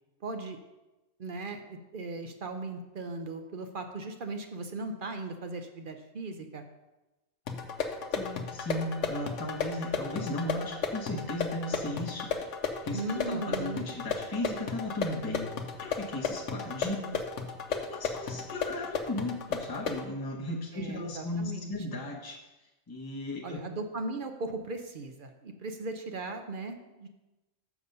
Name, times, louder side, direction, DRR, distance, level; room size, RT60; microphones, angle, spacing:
voice 1, 0.2-0.6 1.2-6.6 12.9-13.9 16.8-17.2 20.7-21.7 23.4-27.1, right 2 dB, 50° right, 6 dB, 0.7 m, -38 dB
sound 1, 7.5-20.1, left 5 dB, 75° left, 1.1 m, -34 dB
voice 2, 8.1-15.5 15.8-17.0 17.7-22.4 22.9-23.6, left 1 dB, 20° left, -2 dB, 0.9 m, -36 dB
7.0 x 6.0 x 5.2 m, 1.0 s
omnidirectional pair, 1.3 m